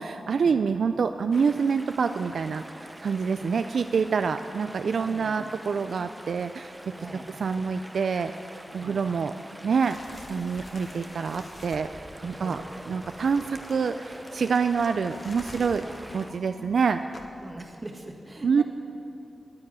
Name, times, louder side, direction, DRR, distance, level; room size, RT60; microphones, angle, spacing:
voice 1, 0.0-2.6 3.0-6.7 7.4-8.3 8.7-9.3 9.6-10.0 10.3-12.6 12.9-15.8 16.1-17.0 18.4-18.6, right 5 dB, 75° right, 9 dB, 0.3 m, -26 dB
sound 1, 1.3-16.3, right 1 dB, 10° right, 0.7 m, -46 dB
voice 2, 4.9-5.5 6.9-7.3 8.7-9.1 12.4-12.7 15.8-15.9 16.3-16.5 17.4-18.6, right 2 dB, 35° right, 3 dB, 1.8 m, -42 dB
sound 2, 9.8-18.0, left 2 dB, 50° left, 1.3 m, -48 dB
sound 3, 11.7-16.8, equal, 10° left, 1.5 m, -48 dB
9.8 x 9.6 x 8.9 m, 2.7 s
cardioid pair, 50°, 0 cm